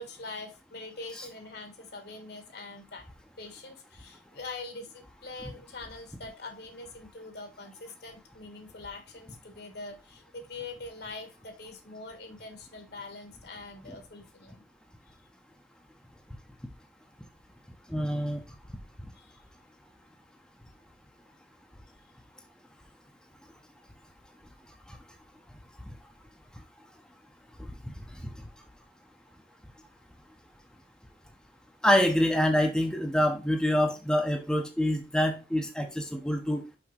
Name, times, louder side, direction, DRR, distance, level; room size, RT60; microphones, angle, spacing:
voice 1, 0.0-3.0 3.4-14.6 15.1-15.2 19.1-19.4, left 3 dB, 65° left, 6 dB, 1.6 m, -43 dB
voice 2, 17.9-18.4 31.8-36.6, equal, 5° left, 3 dB, 0.7 m, -26 dB
6.0 x 5.4 x 3.2 m, 0.30 s
head